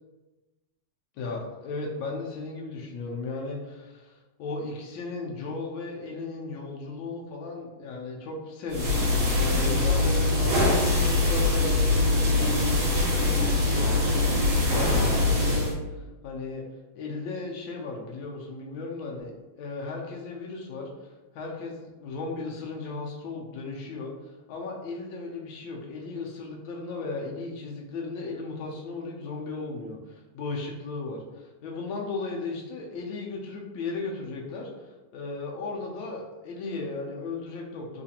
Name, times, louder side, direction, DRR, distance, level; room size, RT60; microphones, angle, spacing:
voice 1, 1.2-16.6 16.9-19.3 19.6-20.9 21.3-38.0, left 3 dB, 90° left, -2 dB, 1.4 m, -36 dB
sound 1, 8.7-15.7, left 2 dB, 85° right, 1.7 m, -23 dB
3.8 x 2.5 x 2.7 m, 1.2 s
omnidirectional pair, 2.1 m